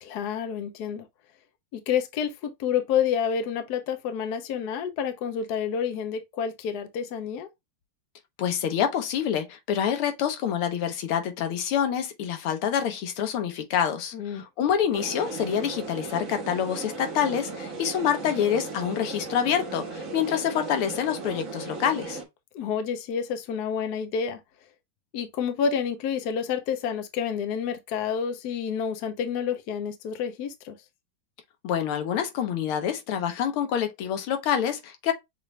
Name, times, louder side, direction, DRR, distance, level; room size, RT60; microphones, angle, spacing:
voice 1, 0.0-1.1 1.7-7.5 14.1-14.4 22.5-24.4 25.1-30.8, left 7 dB, 65° left, 1.0 m, -29 dB
voice 2, 8.4-22.2 31.6-35.1, left 9 dB, 85° left, 1.8 m, -27 dB
sound 1, 14.9-22.2, right 3 dB, 45° right, 1.5 m, -36 dB
6.6 x 2.5 x 3.2 m
omnidirectional pair, 2.3 m